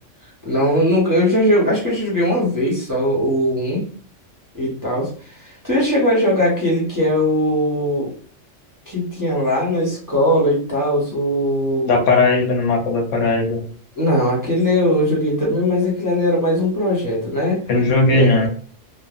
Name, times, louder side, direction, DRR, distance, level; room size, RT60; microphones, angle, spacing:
voice 1, 0.4-3.9 4.5-8.1 8.9-12.0 14.0-17.6 18.1-18.5, equal, 20° right, -6 dB, 0.8 m, -19 dB
voice 2, 11.8-13.6 17.7-18.5, left 3 dB, 80° left, 1 dB, 1.1 m, -17 dB
3.2 x 2.1 x 2.4 m, 0.43 s
omnidirectional pair, 1.3 m